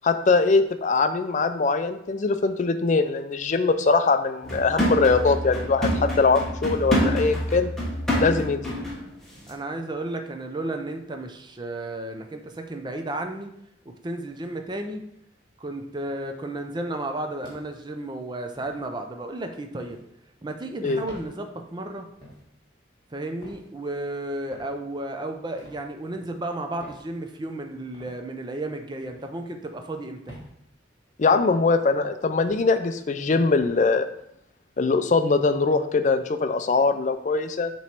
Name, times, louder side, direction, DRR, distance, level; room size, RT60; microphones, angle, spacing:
voice 1, 0.0-7.7 8.2-8.7 20.8-21.0 31.2-34.0 34.8-37.7, left 4 dB, 40° left, 9 dB, 0.4 m, -22 dB
sound 1, 4.4-9.1 9.4-9.5, equal, ahead, 1.4 m, -26 dB
voice 2, 9.5-13.5 13.9-15.0 15.6-20.0 20.4-22.1 23.1-30.4, right 2 dB, 25° right, 5 dB, 0.5 m, -33 dB
sound 2, 17.4-17.9 18.6-18.8 19.8-20.0 21.0-21.3 22.2-22.5 23.4-23.7 24.5-24.8 25.6-25.8 26.8-27.0 27.9-28.1 29.1-29.3 30.3-30.5 31.3-31.5 32.4-32.7 33.6-33.8, equal, 25° left, 1.5 m, -46 dB
7.2 x 3.1 x 4.4 m, 0.75 s
head